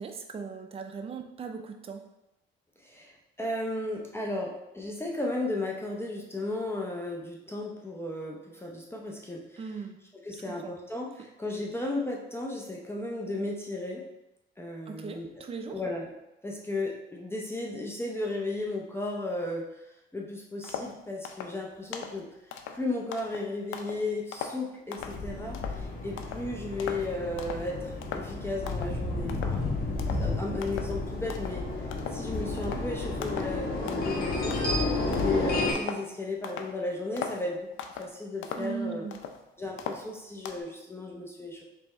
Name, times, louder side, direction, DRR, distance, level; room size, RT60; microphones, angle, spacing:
voice 1, 0.0-2.0 9.6-10.0 10.5-10.7 14.9-15.8 38.6-39.2, right 5 dB, 30° right, 5 dB, 0.5 m, -38 dB
voice 2, 2.8-9.6 10.2-14.0 14.6-15.4 15.7-16.1 16.4-19.9 20.1-22.3 22.7-29.6 30.0-34.6 35.0-37.7 38.0-39.1 39.6-41.6, left 2 dB, 10° left, -2 dB, 0.7 m, -35 dB
sound 1, 20.6-21.0 21.2-21.6 21.9-22.2 22.5-24.1 24.3-25.2 25.5-25.8 26.2-26.5 26.8-27.1 27.4-27.7 28.0-28.4 28.7-29.0 29.3-29.7 30.0-30.3 30.6-31.0 31.3-31.6 31.9-32.3 32.6-32.9 33.2-33.6 33.9-34.2 34.5-36.1 36.4-36.7 37.2-37.4 37.8-38.1 38.4-39.4 39.8-40.6, left 7 dB, 85° left, 0.5 m, -39 dB
sound 2, 25.0-35.7, left 2 dB, 50° left, 1.1 m, -31 dB
3.4 x 3.3 x 4.1 m, 0.91 s
cardioid pair, 90°, 20 cm